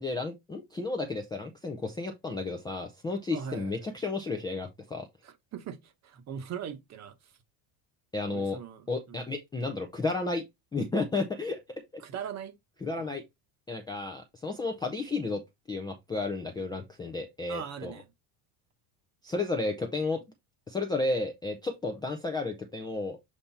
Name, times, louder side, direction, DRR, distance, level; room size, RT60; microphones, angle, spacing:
voice 1, 0.0-5.1 8.1-8.6 8.9-10.4 10.7-11.6 11.9-12.0 12.8-13.2 13.7-15.4 15.7-17.9 19.2-20.2 20.7-23.2, left 3 dB, 10° left, 0.4 m, -32 dB
voice 2, 3.3-3.7 5.2-7.1 8.3-9.2 12.0-12.5 13.0-13.1 17.5-18.0, right 8 dB, 35° right, 1.0 m, -40 dB
7.2 x 3.4 x 4.1 m
cardioid pair, 160°, 48 cm